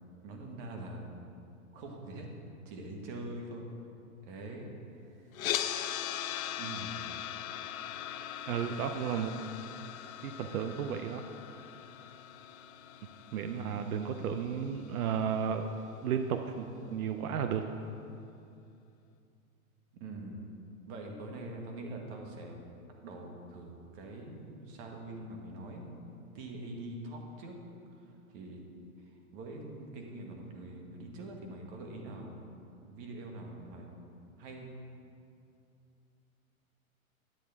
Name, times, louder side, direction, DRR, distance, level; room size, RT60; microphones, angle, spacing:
voice 1, 0.2-1.0 1.7-2.3 2.6-3.6 4.2-5.5 6.6-7.0 13.5-13.9 19.9-20.5 20.9-22.6 23.0-26.0 26.3-27.5 27.9-28.6 29.0-32.5 32.8-33.9 34.4-34.7, right 2 dB, 40° right, 1 dB, 1.4 m, -44 dB
sound 1, 5.3-15.4, left 11 dB, 70° left, 0.6 m, -40 dB
voice 2, 8.5-9.3 10.2-11.2 13.3-15.6 16.0-17.6, right 8 dB, 80° right, 7 dB, 0.6 m, -33 dB
10.5 x 8.3 x 3.5 m, 2.6 s
hypercardioid pair, 140°, 43 cm